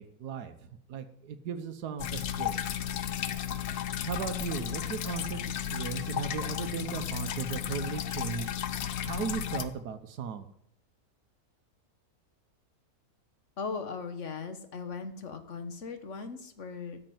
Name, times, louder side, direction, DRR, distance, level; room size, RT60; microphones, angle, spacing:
voice 1, 0.0-2.6 4.0-8.5 9.0-10.5, right 7 dB, 85° right, 8 dB, 1.5 m, -37 dB
sound 1, 2.0-9.6, left 10 dB, 80° left, 1.4 m, -34 dB
voice 2, 13.6-17.0, left 5 dB, 50° left, 8 dB, 1.6 m, -38 dB
13.5 x 6.7 x 9.3 m, 0.71 s
omnidirectional pair, 1.6 m